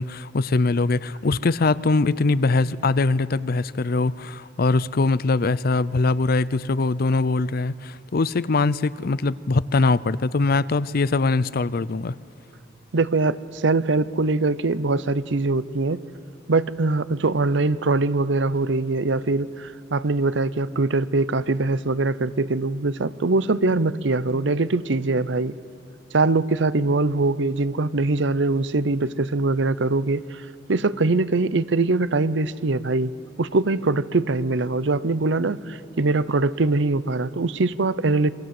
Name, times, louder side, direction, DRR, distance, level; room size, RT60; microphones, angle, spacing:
voice 1, 0.0-12.1, left 3 dB, 50° left, 18 dB, 0.5 m, -22 dB
voice 2, 12.9-16.0 16.5-25.5 26.1-33.1 33.4-38.3, right 3 dB, 70° right, 16 dB, 0.7 m, -22 dB
28.0 x 23.0 x 7.8 m, 2.5 s
head